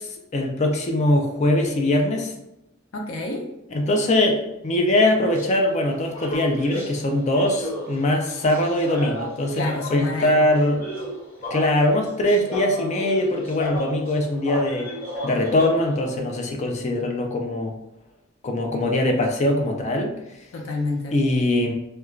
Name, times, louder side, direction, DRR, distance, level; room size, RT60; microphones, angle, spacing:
voice 1, 0.0-2.3 3.7-10.9 11.5-14.9 15.2-17.7 18.4-20.1 21.1-21.7, left 1 dB, 35° left, 2 dB, 0.4 m, -22 dB
voice 2, 2.9-3.4 9.5-10.4 20.5-21.2, left 2 dB, 85° left, 1 dB, 0.6 m, -28 dB
sound 1, 5.2-16.1, equal, 15° left, 1.3 m, -34 dB
2.4 x 2.2 x 3.0 m, 0.89 s
head